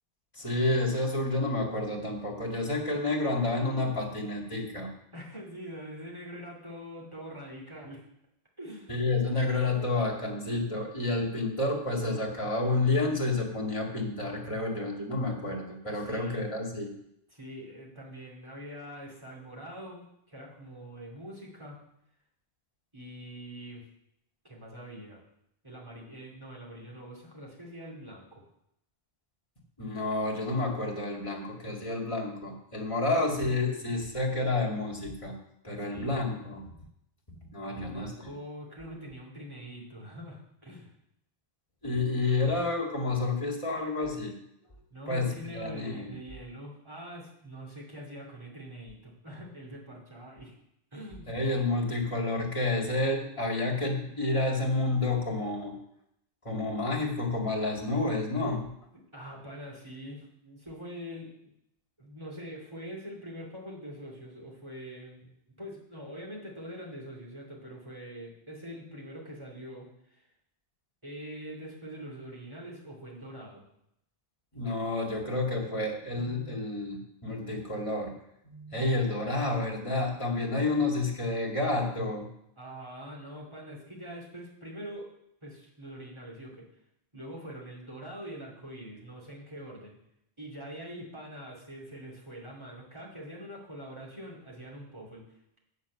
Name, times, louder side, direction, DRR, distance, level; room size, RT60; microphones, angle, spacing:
voice 1, 0.3-4.9 8.9-16.9 29.8-35.4 35.6-36.7 37.5-38.3 41.8-44.3 45.1-46.1 51.3-55.8 56.4-58.7 74.5-78.2 78.4-82.3, left 2 dB, 30° left, -1 dB, 2.1 m, -30 dB
voice 2, 5.1-8.0 8.6-8.9 16.0-16.5 17.3-21.8 22.9-23.9 24.4-25.2 25.6-28.4 35.8-36.2 37.6-40.9 44.9-50.6 50.9-51.4 58.9-61.5 62.0-65.3 65.6-70.2 71.0-73.7 82.6-85.1 85.4-86.7 87.1-90.0 90.4-95.6, equal, 25° right, -3 dB, 2.8 m, -44 dB
8.1 x 6.5 x 7.1 m, 0.77 s
omnidirectional pair, 1.1 m